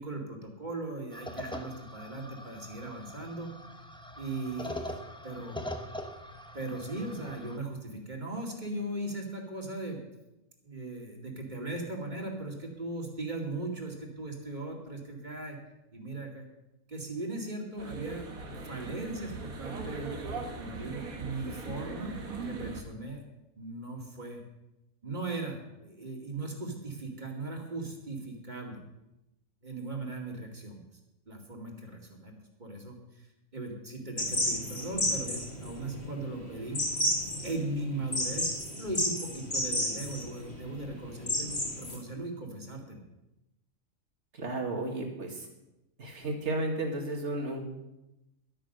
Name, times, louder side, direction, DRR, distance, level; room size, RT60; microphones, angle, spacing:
voice 1, 0.0-3.5 4.2-5.7 6.5-10.0 10.6-15.6 15.9-16.4 16.9-18.3 18.6-22.1 22.4-23.2 23.6-24.4 25.0-28.8 29.6-30.8 31.3-32.3 32.6-37.1 37.4-38.5 38.8-43.0, right 2 dB, 30° right, 1 dB, 2.3 m, -38 dB
sound 1, 1.1-7.6, left 1 dB, 5° left, 0.7 m, -42 dB
sound 2, 17.8-22.8, right 3 dB, 85° right, 1.9 m, -40 dB
sound 3, 34.2-42.0, left 1 dB, 45° left, 3.6 m, -32 dB
voice 2, 44.3-45.5 46.0-47.6, right 2 dB, 55° right, 2 dB, 2.4 m, -33 dB
12.5 x 9.0 x 6.6 m, 0.93 s
omnidirectional pair, 1.4 m